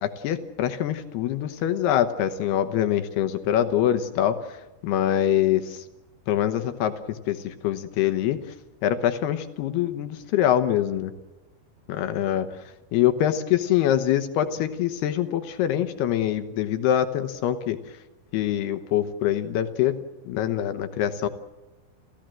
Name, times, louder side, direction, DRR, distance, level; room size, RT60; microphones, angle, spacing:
voice 1, 0.0-4.6 4.8-5.8 6.3-8.4 8.8-11.1 11.9-12.6 12.9-17.8 18.3-20.0 20.3-21.3, left 11 dB, 75° left, 9 dB, 2.4 m, -24 dB
29.0 x 15.5 x 7.6 m, 1.1 s
omnidirectional pair, 5.8 m